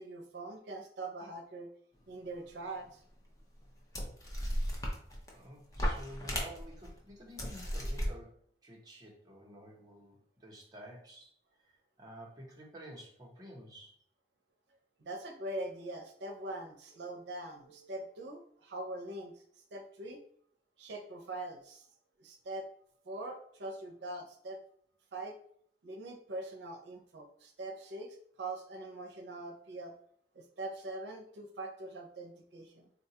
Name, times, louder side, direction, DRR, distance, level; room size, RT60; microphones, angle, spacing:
voice 1, 0.0-1.7 2.1-3.0 15.0-19.4 19.7-20.2 20.8-21.9 22.2-22.7 23.1-24.6 25.1-25.4 25.8-30.0 30.3-32.9, right 2 dB, 80° right, 3 dB, 0.5 m, -43 dB
sound 1, 2.8-2.9 3.6-3.7 3.9-5.4 5.7-6.9 7.4-8.1, equal, 20° left, 0.5 m, -35 dB
voice 2, 5.3-11.3 11.7-14.0, equal, 20° right, -3 dB, 0.7 m, -50 dB
3.7 x 2.2 x 2.7 m, 0.62 s
head